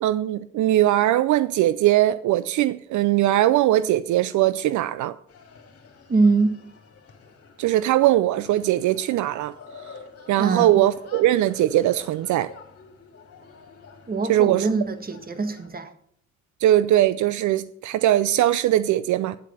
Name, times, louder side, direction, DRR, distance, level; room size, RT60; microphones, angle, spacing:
voice 1, 0.0-5.2 7.6-9.5 10.3-12.5 14.3-14.7 16.6-19.4, right 14 dB, 75° right, 0.5 m, -20 dB
sound 1, 5.3-15.7, left 5 dB, 50° left, 2.6 m, -48 dB
voice 2, 6.1-6.5 10.4-10.8 14.1-15.9, right 3 dB, 30° right, 1.5 m, -23 dB
9.8 x 8.3 x 5.5 m
cardioid pair, 90°, 30 cm